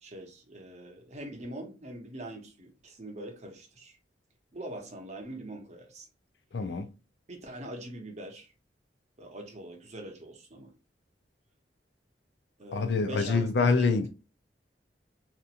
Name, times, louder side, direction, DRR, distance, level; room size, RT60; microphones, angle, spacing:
voice 1, 0.0-4.0 4.5-6.1 6.7-6.8 7.3-8.5 9.2-10.7 12.6-14.1, right 1 dB, 40° right, 0.7 m, -43 dB
voice 2, 6.5-6.9 12.7-14.1, left 4 dB, 75° left, 0.5 m, -25 dB
2.9 x 2.4 x 2.4 m
head